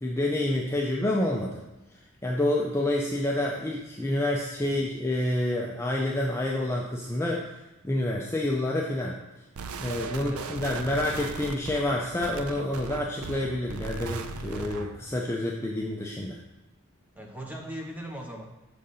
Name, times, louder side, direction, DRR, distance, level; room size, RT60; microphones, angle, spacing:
voice 1, 0.0-1.6 2.2-7.5 7.8-9.2 9.8-16.4, left 1 dB, 10° left, -2 dB, 0.5 m, -28 dB
sound 1, 9.6-15.0, right 5 dB, 75° right, 0.4 m, -38 dB
voice 2, 10.2-10.7 17.2-18.4, right 1 dB, 5° right, 1 dB, 0.9 m, -39 dB
6.8 x 3.8 x 5.5 m, 1.1 s
head